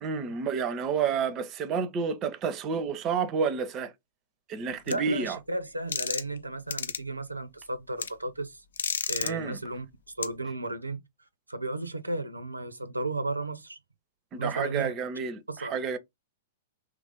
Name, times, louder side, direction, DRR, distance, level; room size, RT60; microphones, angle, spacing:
voice 1, 0.0-3.9 4.5-5.4 9.2-9.6 14.3-16.0, right 6 dB, 30° right, 0.5 m, -30 dB
sound 1, 4.9-5.0 5.9-6.4 6.7-7.0 8.0-8.1 8.8-9.3 10.2-10.3, left 6 dB, 65° left, 0.3 m, -30 dB
voice 2, 4.9-8.6 9.1-9.9 10.2-11.0 11.5-13.8 14.4-14.9 15.5-15.8, right 2 dB, 85° right, 0.4 m, -34 dB
3.0 x 2.5 x 3.4 m
figure-of-eight pair, 105°, 0 cm